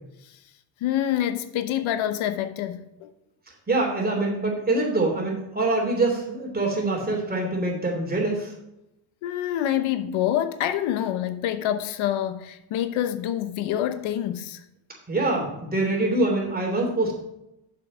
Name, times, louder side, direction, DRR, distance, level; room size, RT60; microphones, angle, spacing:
voice 1, 0.8-3.1 9.2-14.6, left 11 dB, 90° left, 0.9 m, -26 dB
voice 2, 3.7-8.5 15.1-17.1, right 2 dB, 20° right, 3.0 m, -24 dB
7.5 x 7.0 x 6.1 m
cardioid pair, 120°, 47 cm